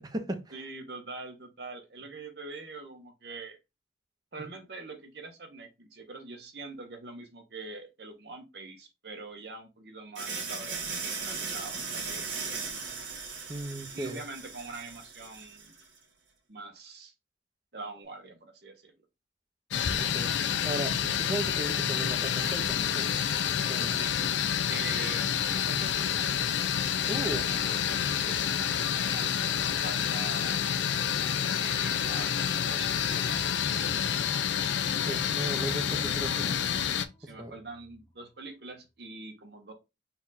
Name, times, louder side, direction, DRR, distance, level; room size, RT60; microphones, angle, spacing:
voice 1, 0.0-0.4 13.5-14.2 20.0-20.3 20.6-23.2 23.6-24.0 27.1-27.5 35.0-36.7 37.2-37.6, right 1 dB, 20° right, 0.7 m, -36 dB
voice 2, 0.5-3.6 4.3-10.8 11.2-12.6 13.9-15.7 16.5-17.1 17.7-18.9 23.9-24.2 24.7-26.4 27.2-30.6 31.5-32.3 32.6-34.2 35.9-36.0 37.2-39.7, right 3 dB, 55° right, 1.0 m, -44 dB
sound 1, 10.2-15.9, right 5 dB, 85° right, 1.6 m, -37 dB
sound 2, 19.7-37.1, left 8 dB, 70° left, 0.4 m, -28 dB
sound 3, 33.1-38.4, equal, 25° left, 0.8 m, -51 dB
4.2 x 2.4 x 4.1 m
head